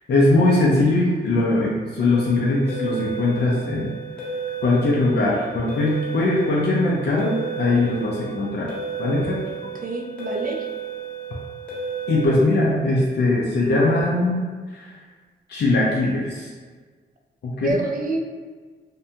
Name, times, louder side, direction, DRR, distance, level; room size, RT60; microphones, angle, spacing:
voice 1, 0.1-3.9 4.6-8.7 9.0-9.4 12.1-14.4 14.7-14.9 15.5-16.5 17.4-17.8, left 2 dB, 60° left, -4 dB, 0.5 m, -20 dB
sound 1, 2.0-12.3, right 6 dB, 5° left, 0.8 m, -33 dB
voice 2, 9.8-10.7 17.6-18.2, right 2 dB, 50° right, 2 dB, 0.4 m, -27 dB
2.6 x 2.2 x 2.7 m, 1.5 s
cardioid pair, 65°, 19 cm